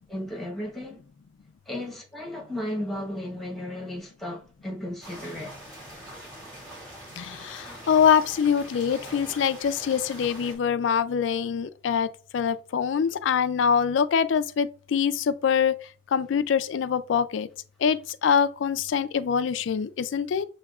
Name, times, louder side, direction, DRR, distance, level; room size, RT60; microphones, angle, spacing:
voice 1, 0.1-1.0 1.7-5.5, left 1 dB, ahead, 1.0 m, -34 dB
sound 1, 5.0-10.6, right 1 dB, 20° right, 2.1 m, -43 dB
voice 2, 7.2-12.1 12.3-15.7 16.1-17.5 17.8-20.5, left 7 dB, 70° left, 0.3 m, -24 dB
6.9 x 2.8 x 2.3 m
head